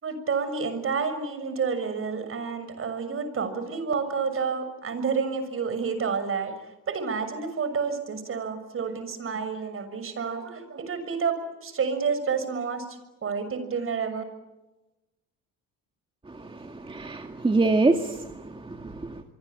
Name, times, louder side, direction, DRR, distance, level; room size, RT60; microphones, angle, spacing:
voice 1, 0.0-6.5 6.9-14.2, right 5 dB, 45° right, 11 dB, 6.7 m, -29 dB
voice 2, 16.3-19.2, right 3 dB, 15° right, 4 dB, 2.0 m, -26 dB
26.0 x 24.5 x 8.5 m, 1.0 s
cardioid pair, 100°, 31 cm